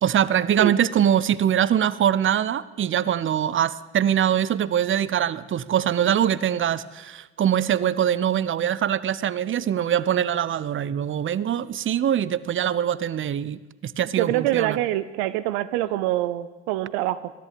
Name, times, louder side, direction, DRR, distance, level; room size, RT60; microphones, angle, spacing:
voice 1, 0.0-14.8, right 10 dB, 35° right, 19 dB, 0.9 m, -23 dB
voice 2, 14.2-17.3, right 15 dB, 65° right, 16 dB, 0.8 m, -25 dB
21.5 x 14.5 x 8.6 m, 1.1 s
figure-of-eight pair, 55°, 34 cm